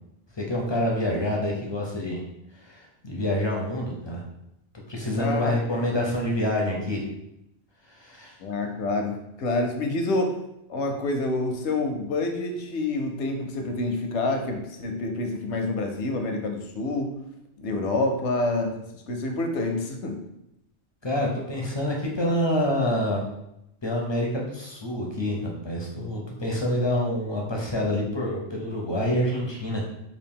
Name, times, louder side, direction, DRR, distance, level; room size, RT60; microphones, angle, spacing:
voice 1, 0.3-2.2 2.5-4.3 4.9-7.1 7.8-8.4 21.0-23.2 23.8-29.8, left 1 dB, 40° left, -1 dB, 0.4 m, -27 dB
voice 2, 5.2-5.6 8.4-10.4 10.7-17.1 17.6-20.2, left 2 dB, 80° left, 4 dB, 0.9 m, -27 dB
3.4 x 2.4 x 3.5 m, 0.83 s
omnidirectional pair, 1.2 m